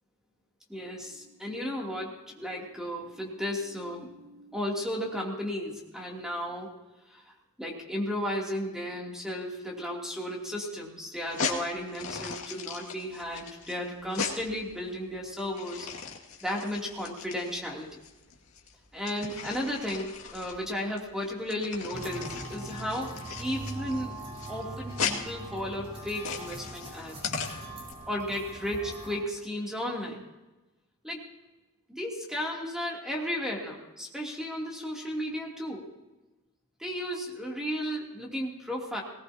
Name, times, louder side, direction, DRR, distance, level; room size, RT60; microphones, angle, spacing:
voice 1, 0.7-6.7 7.1-7.3 7.6-15.9 16.4-17.9 18.9-24.2 24.5-27.3 28.1-30.2 31.0-31.2 31.9-35.9 36.8-39.0, equal, 5° right, -2 dB, 2.9 m, -34 dB
sound 1, 11.2-27.9, left 5 dB, 85° left, 2.1 m, -38 dB
sound 2, 21.9-29.2, right 1 dB, 30° right, 4.8 m, -41 dB
19.5 x 19.0 x 2.9 m, 1.1 s
head